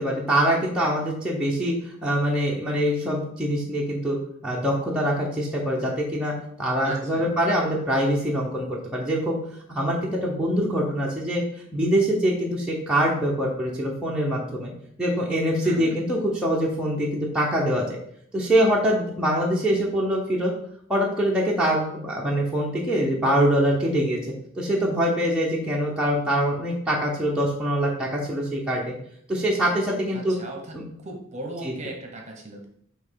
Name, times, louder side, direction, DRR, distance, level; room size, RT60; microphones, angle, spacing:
voice 1, 0.0-4.2 4.4-9.4 9.7-11.4 11.7-14.7 15.0-17.9 18.3-20.5 20.9-24.2 24.5-28.9 29.3-30.4 30.7-30.8 31.6-31.7, equal, 5° right, -4 dB, 0.9 m, -24 dB
voice 2, 6.8-7.3 15.6-16.0 30.1-32.7, right 2 dB, 30° right, 1 dB, 1.1 m, -37 dB
5.7 x 3.2 x 5.7 m, 0.68 s
head